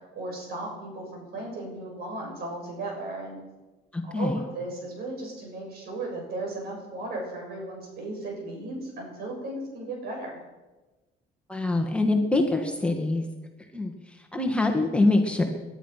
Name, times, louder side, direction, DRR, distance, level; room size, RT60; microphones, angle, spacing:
voice 1, 0.1-3.4 4.0-10.4, right 2 dB, 65° right, 0 dB, 7.3 m, -36 dB
voice 2, 3.9-4.4 11.5-13.2 13.7-13.9 14.3-15.4, left 2 dB, 5° left, 2 dB, 1.9 m, -24 dB
20.0 x 11.0 x 5.9 m, 1.2 s
cardioid pair, 110°, 17 cm